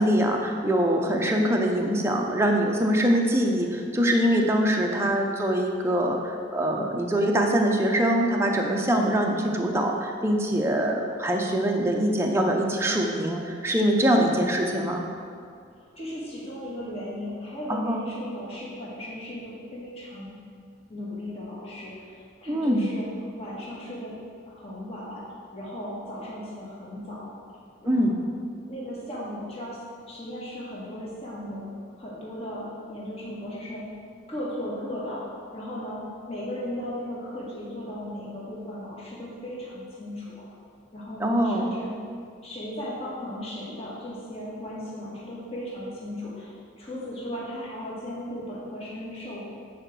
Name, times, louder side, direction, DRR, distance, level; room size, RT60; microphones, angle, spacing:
voice 1, 0.0-15.1 17.7-18.0 22.5-22.9 27.9-28.2 41.2-41.8, equal, 15° right, 1 dB, 0.8 m, -23 dB
voice 2, 14.0-14.4 15.8-20.3 20.9-23.1 23.3-24.1 24.5-27.4 27.8-28.1 28.7-29.8 30.1-31.7 32.0-33.9 34.3-35.3 35.5-40.5 40.9-41.9 42.4-49.5, left 1 dB, 30° left, -6 dB, 1.9 m, -36 dB
9.7 x 5.0 x 6.2 m, 2.3 s
head